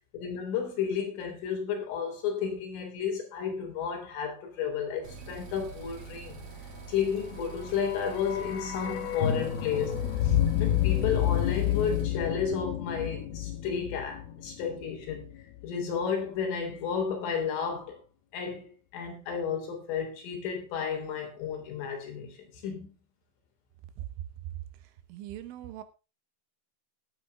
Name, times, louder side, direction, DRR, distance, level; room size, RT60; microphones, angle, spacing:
voice 1, 0.1-6.4 6.9-15.3 15.6-18.0 18.3-22.9, left 7 dB, 90° left, 6.2 m, -32 dB
sound 1, 5.0-12.0, right 5 dB, 45° right, 2.7 m, -45 dB
sound 2, 7.5-15.6 15.9-16.0, left 11 dB, 70° left, 2.6 m, -30 dB
voice 2, 25.1-25.8, right 13 dB, 80° right, 3.7 m, -40 dB
18.0 x 8.9 x 3.5 m
omnidirectional pair, 5.6 m